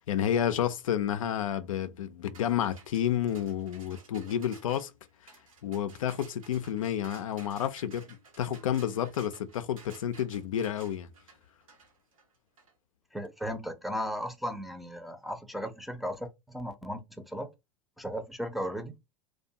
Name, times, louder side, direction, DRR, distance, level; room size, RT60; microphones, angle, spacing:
voice 1, 0.1-4.9 5.2-5.3 5.6-11.1, left 10 dB, 80° left, 0.4 m, -30 dB
sound 1, 2.3-12.7, right 4 dB, 85° right, 1.0 m, -55 dB
voice 2, 13.1-17.5 18.0-19.0, equal, ahead, 0.6 m, -36 dB
2.4 x 2.3 x 2.7 m
hypercardioid pair, 85°, 17 cm